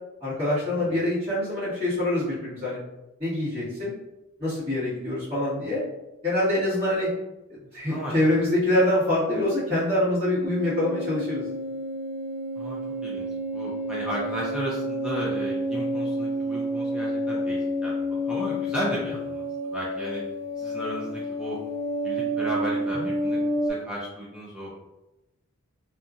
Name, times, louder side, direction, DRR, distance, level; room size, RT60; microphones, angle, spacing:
voice 1, 0.2-2.8 3.2-3.9 4.4-5.8 6.2-7.1 7.5-11.4 22.9-23.1, left 1 dB, 25° right, -14 dB, 1.4 m, -25 dB
sound 1, 10.4-23.7, equal, 45° right, 0.9 m, -29 dB
voice 2, 12.6-13.3 13.5-19.4 19.7-20.2 20.6-21.6 22.0-24.7, right 1 dB, 5° right, -6 dB, 0.4 m, -34 dB
2.8 x 2.4 x 2.4 m, 0.95 s
head